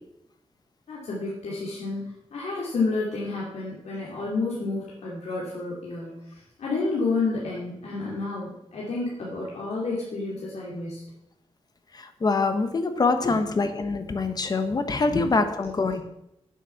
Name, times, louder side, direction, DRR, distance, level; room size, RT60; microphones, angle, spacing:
voice 1, 0.9-2.0 2.3-6.2 6.6-11.1 15.1-15.2 15.9-16.0, left 3 dB, 80° left, -5 dB, 2.8 m, -30 dB
voice 2, 11.9-16.0, left 3 dB, 35° left, 8 dB, 1.1 m, -25 dB
9.2 x 7.8 x 5.8 m, 0.80 s
wide cardioid pair, 140°, 11 cm